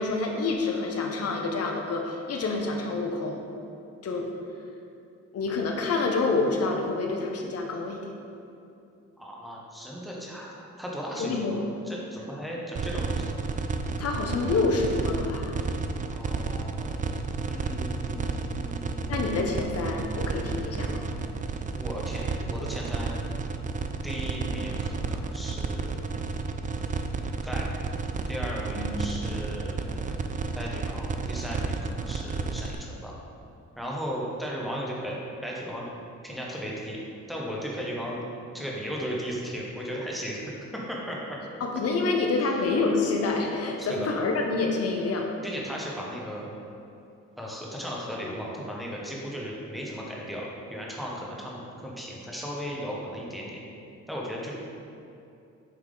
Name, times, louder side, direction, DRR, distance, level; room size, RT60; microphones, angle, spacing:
voice 1, 0.0-3.4 4.0-4.3 5.3-8.0 11.2-11.7 14.0-15.6 19.1-21.1 28.7-29.1 41.6-45.3, left 3 dB, 55° left, 1 dB, 0.9 m, -27 dB
voice 2, 9.2-13.2 16.1-19.2 21.7-23.2 24.0-26.0 27.4-27.7 28.3-30.0 30.5-33.1 33.8-35.2 35.4-35.9 36.2-37.0 37.3-38.2 38.5-40.4 40.7-41.4 43.8-44.1 45.4-46.5 47.4-53.6 54.1-54.6, equal, ahead, -4 dB, 1.3 m, -36 dB
sound 1, 12.8-32.8, right 4 dB, 25° right, 0.3 m, -31 dB
8.6 x 3.4 x 3.9 m, 2.7 s
cardioid pair, 90°, 30 cm